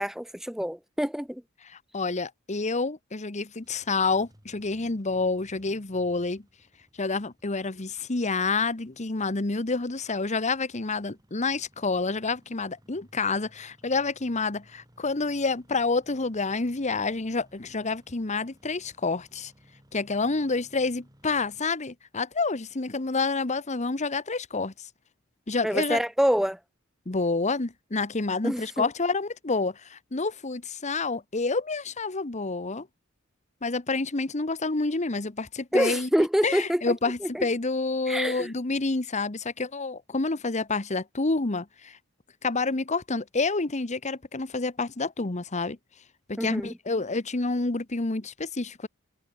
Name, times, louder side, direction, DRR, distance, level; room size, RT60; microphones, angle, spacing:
voice 1, 0.0-1.4 25.6-26.6 28.4-28.9 35.7-36.9 37.2-37.5 38.1-38.5 46.4-46.7, equal, ahead, 0.5 m, -26 dB
voice 2, 1.9-6.4 7.0-19.5 19.9-24.7 25.5-26.0 27.1-32.9 33.6-36.1 36.4-42.0 42.4-45.8 46.3-48.9, left 3 dB, 35° left, 1.1 m, -28 dB
Engine starting, 3.5-21.6, equal, 20° right, 7.3 m, -60 dB
head